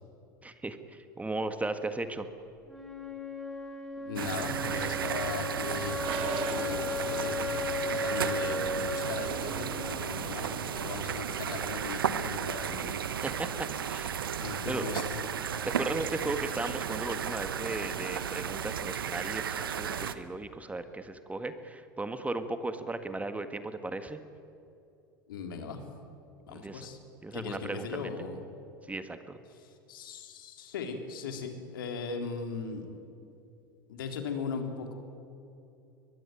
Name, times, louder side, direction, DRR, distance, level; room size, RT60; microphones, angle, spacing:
voice 1, 0.4-2.3 12.8-13.0 13.2-14.2 14.7-14.9 15.7-24.2 26.5-26.9 27.2-28.1 28.9-29.4, right 2 dB, 10° right, 9 dB, 1.8 m, -36 dB
Wind instrument woodwind instrument, 2.7-10.7, left 2 dB, 5° left, 4.1 m, -36 dB
voice 2, 4.0-13.0 14.4-15.2 25.3-25.8 26.5-27.0 27.3-28.4 29.6-32.9 33.9-34.9, left 5 dB, 75° left, 5 dB, 3.6 m, -38 dB
sound 1, 4.2-20.2, right 8 dB, 80° right, 1.1 m, -34 dB
Toilet flush, 6.0-11.2, right 6 dB, 55° right, 3.2 m, -42 dB
22.5 x 22.5 x 9.3 m, 2.6 s
hypercardioid pair, 80°, 12 cm